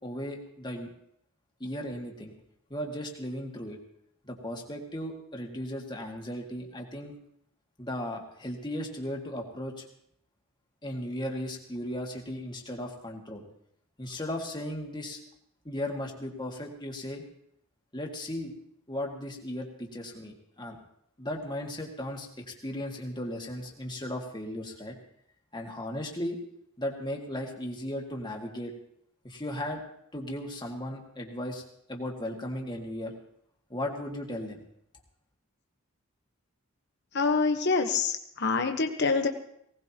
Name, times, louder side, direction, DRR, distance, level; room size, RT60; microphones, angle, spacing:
voice 1, 0.0-0.9 1.6-2.3 2.7-3.8 4.2-7.1 7.8-9.9 10.8-13.4 14.0-15.2 15.6-17.2 17.9-18.5 18.9-20.8 21.2-25.0 25.5-26.4 26.8-28.7 29.2-29.8 30.1-33.1 33.7-34.6, left 1 dB, 20° left, 1 dB, 2.0 m, -36 dB
voice 2, 37.1-39.3, left 4 dB, 50° left, 5 dB, 1.1 m, -26 dB
19.5 x 18.5 x 3.0 m, 0.71 s
head